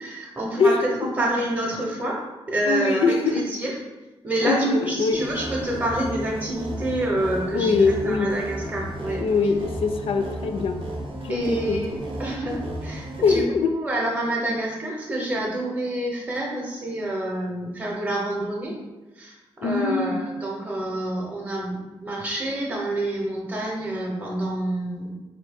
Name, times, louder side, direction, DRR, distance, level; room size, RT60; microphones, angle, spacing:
voice 1, 0.0-2.2 2.5-3.7 4.2-9.2 11.3-13.4 13.7-18.7 19.2-25.1, right 1 dB, 15° right, -2 dB, 0.6 m, -28 dB
voice 2, 0.6-1.1 2.7-3.5 4.4-5.2 7.5-8.3 9.2-10.9 11.2-11.8 13.2-13.7 19.6-20.2, left 4 dB, 70° left, 6 dB, 0.4 m, -22 dB
sound 1, 5.1-13.4, right 1 dB, 65° right, 0.6 m, -34 dB
3.9 x 2.7 x 3.4 m, 1.1 s
wide cardioid pair, 135°, 10 cm